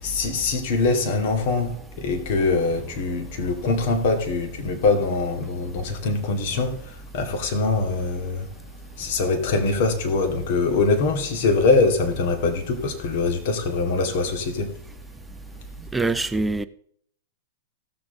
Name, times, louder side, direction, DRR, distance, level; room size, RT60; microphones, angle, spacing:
voice 1, 0.0-8.5 9.0-14.8, left 3 dB, 60° left, 2.2 m, -23 dB
voice 2, 15.9-16.7, right 3 dB, 10° right, 0.6 m, -23 dB
17.0 x 6.9 x 3.9 m
hypercardioid pair, 120°, 0 cm